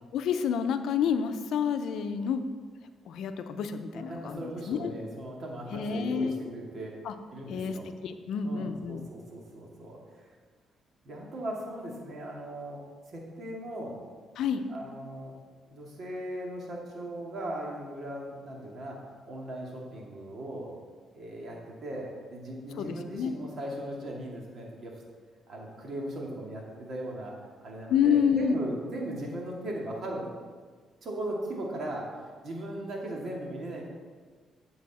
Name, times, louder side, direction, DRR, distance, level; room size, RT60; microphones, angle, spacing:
voice 1, 0.1-2.4 3.1-4.9 5.7-6.4 7.0-7.1 7.5-7.8 8.0-9.1 14.4-14.6 22.8-23.3 27.9-28.7, left 7 dB, 75° left, 8 dB, 0.6 m, -28 dB
voice 2, 3.9-7.0 7.3-7.9 8.4-10.3 11.0-12.8 13.1-14.0 14.7-15.4 15.7-20.7 21.2-25.0 25.5-27.3 27.6-30.3 31.0-33.9, right 1 dB, 55° right, -2 dB, 2.2 m, -38 dB
8.6 x 7.0 x 4.2 m, 1.5 s
cardioid pair, 90°, 0 cm